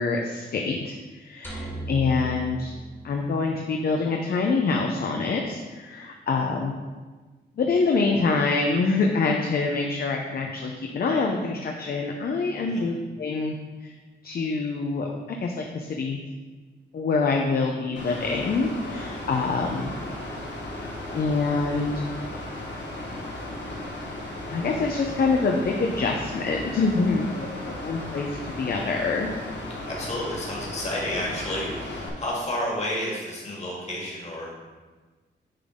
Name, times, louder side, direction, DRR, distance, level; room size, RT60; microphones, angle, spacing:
voice 1, 0.0-2.7 3.0-6.7 7.6-13.5 13.8-13.9 14.2-15.1 15.4-16.2 16.9-19.9 21.1-22.0 24.5-29.3, left 4 dB, 55° left, 2 dB, 0.6 m, -25 dB
sound 1, 1.4-3.7, right 2 dB, 10° left, 1.6 m, -36 dB
Mechanical fan, 18.0-32.1, left 1 dB, 70° left, 1.3 m, -35 dB
voice 2, 29.9-34.6, left 1 dB, 35° left, -4 dB, 1.9 m, -31 dB
9.8 x 3.9 x 3.6 m, 1.3 s
wide cardioid pair, 145°, 19 cm